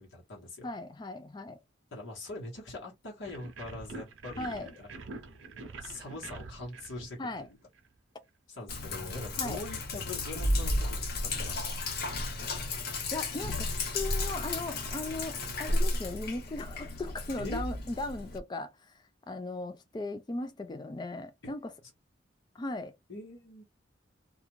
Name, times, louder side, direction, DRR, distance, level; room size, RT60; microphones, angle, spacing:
voice 1, 0.0-0.7 1.9-7.2 7.5-7.6 8.5-11.8 17.4-17.6 21.4-21.5 21.8-21.9 23.1-23.6, left 2 dB, 80° left, 1.2 m, -43 dB
voice 2, 0.6-1.6 4.4-4.7 7.2-7.5 9.4-9.6 13.1-21.7 22.5-22.9, left 2 dB, 20° left, 0.3 m, -38 dB
sound 1, 3.2-7.9, right 3 dB, 75° right, 0.6 m, -46 dB
Sink (filling or washing), 8.7-18.4, left 2 dB, 55° left, 0.7 m, -33 dB
2.4 x 2.4 x 3.0 m
head